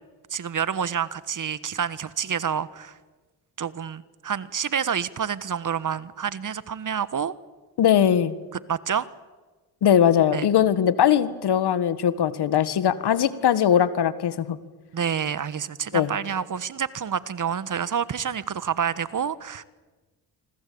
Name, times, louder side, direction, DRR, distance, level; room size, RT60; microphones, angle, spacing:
voice 1, 0.3-3.0 3.6-7.3 8.7-9.1 10.3-10.5 14.9-19.6, right 7 dB, 50° right, 17 dB, 1.4 m, -28 dB
voice 2, 7.8-8.4 9.8-14.6 15.9-16.1, left 9 dB, 70° left, 14 dB, 1.8 m, -20 dB
25.5 x 25.5 x 8.7 m, 1.3 s
supercardioid pair, 55°, 41 cm